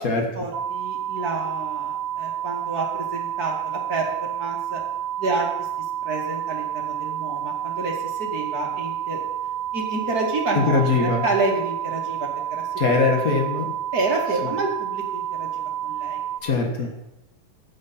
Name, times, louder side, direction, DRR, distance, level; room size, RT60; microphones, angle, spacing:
voice 1, 0.0-4.8 5.2-5.7 6.0-9.2 9.7-12.7 13.9-15.5 15.8-16.2, right 3 dB, 30° right, 0 dB, 2.1 m, -29 dB
sound 1, 0.5-16.4, right 11 dB, 70° right, 1.6 m, -29 dB
voice 2, 10.5-11.2 12.8-13.7 14.4-14.5 16.4-16.9, left 4 dB, 65° left, 3 dB, 0.8 m, -21 dB
14.5 x 9.6 x 4.4 m, 0.90 s
omnidirectional pair, 4.0 m